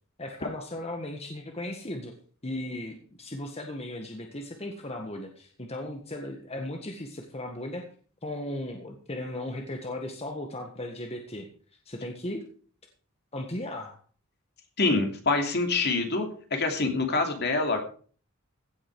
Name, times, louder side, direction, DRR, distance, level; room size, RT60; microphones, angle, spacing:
voice 1, 0.2-2.1 2.4-7.8 8.2-11.5 11.8-12.4 13.3-14.0, left 1 dB, 30° left, 3 dB, 1.7 m, -36 dB
voice 2, 14.8-16.2 16.5-17.8, left 3 dB, 50° left, 4 dB, 2.8 m, -25 dB
16.0 x 8.8 x 4.8 m, 0.43 s
head